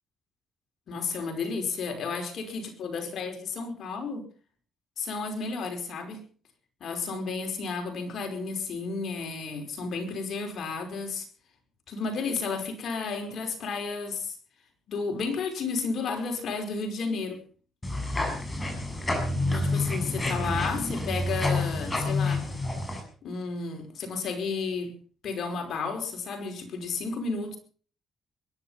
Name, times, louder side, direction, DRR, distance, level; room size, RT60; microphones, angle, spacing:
voice 1, 0.9-4.2 5.0-6.3 6.8-11.3 11.9-14.4 14.9-17.4 19.5-22.5 23.2-24.9 25.2-27.6, left 4 dB, 60° left, 5 dB, 5.3 m, -32 dB
sound 1, 17.8-23.0, left 2 dB, 20° left, 6.7 m, -28 dB
22.0 x 11.0 x 5.7 m, 0.42 s
cardioid pair, 90°, 0 cm